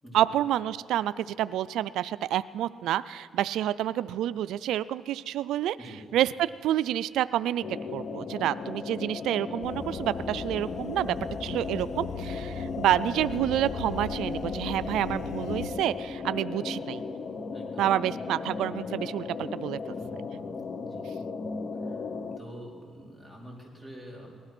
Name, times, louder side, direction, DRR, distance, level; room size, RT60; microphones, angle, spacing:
voice 1, 0.1-5.8 6.1-11.2 11.4-17.0 17.8-19.8, right 12 dB, 85° right, 15 dB, 0.3 m, -28 dB
sound 1, 7.6-22.4, left 4 dB, 50° left, 0.9 m, -36 dB
sound 2, 9.6-15.7, left 4 dB, 75° left, 1.2 m, -37 dB
voice 2, 17.5-17.9 19.9-20.2 20.8-21.1 21.7-22.0 22.4-24.3, equal, 20° left, -2 dB, 4.3 m, -46 dB
19.0 x 12.5 x 6.0 m, 2.4 s
cardioid pair, 90°, 0 cm